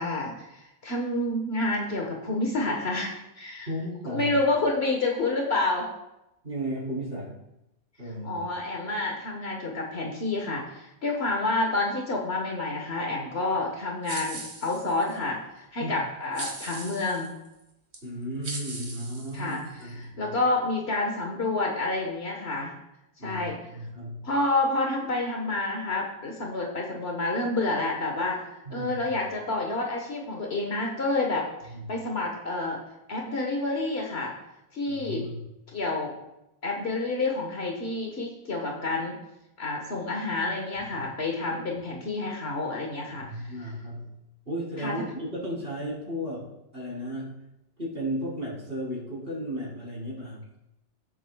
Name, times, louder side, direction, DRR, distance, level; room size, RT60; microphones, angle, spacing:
voice 1, 0.0-3.7 4.1-5.9 8.2-17.4 19.3-22.7 23.2-23.6 24.2-31.5 31.9-32.8 33.1-34.3 34.7-35.3 35.7-36.1 36.6-39.2 39.6-43.5 44.8-44.9, left 2 dB, 70° left, 0 dB, 1.6 m, -29 dB
voice 2, 3.7-4.4 6.4-7.4 8.0-8.5 15.8-16.0 18.0-20.4 23.2-24.3 28.7-29.1 31.7-31.9 34.9-35.4 43.1-44.2 44.5-47.4 47.8-50.4, equal, 60° right, -6 dB, 4.1 m, -35 dB
sound 1, 14.1-15.2 16.3-17.3 17.9-18.0 18.4-19.8, right 3 dB, 80° right, 1.9 m, -39 dB
16.0 x 8.0 x 2.3 m, 0.90 s
omnidirectional pair, 1.1 m